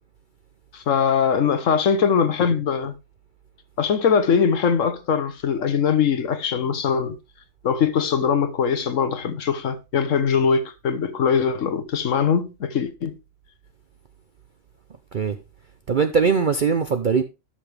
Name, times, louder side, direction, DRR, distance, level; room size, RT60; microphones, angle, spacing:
voice 1, 0.7-2.9 3.8-7.2 7.6-13.2, left 6 dB, 60° left, 1.2 m, -21 dB
voice 2, 15.9-17.2, right 5 dB, 50° right, 0.6 m, -20 dB
12.5 x 5.9 x 3.4 m
omnidirectional pair, 1.6 m